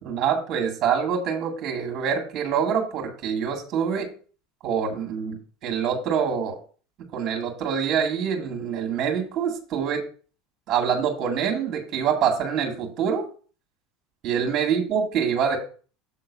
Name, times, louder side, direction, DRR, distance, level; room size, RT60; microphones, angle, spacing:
voice 1, 0.0-4.1 4.6-5.4 5.6-6.6 7.1-10.0 10.7-13.2 14.2-15.6, right 7 dB, 50° right, 2 dB, 2.2 m, -25 dB
7.7 x 3.8 x 6.2 m, 0.39 s
supercardioid pair, 100°, 0 cm